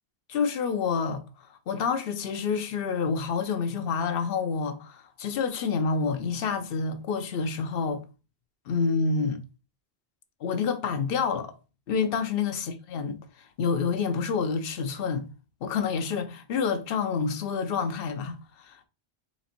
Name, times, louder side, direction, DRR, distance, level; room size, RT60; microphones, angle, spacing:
voice 1, 0.3-1.2 1.7-8.0 8.7-9.4 10.4-11.5 11.9-12.6 12.9-15.3 15.6-18.9, left 5 dB, 65° left, 0.8 m, -28 dB
4.1 x 4.0 x 2.5 m
omnidirectional pair, 1.1 m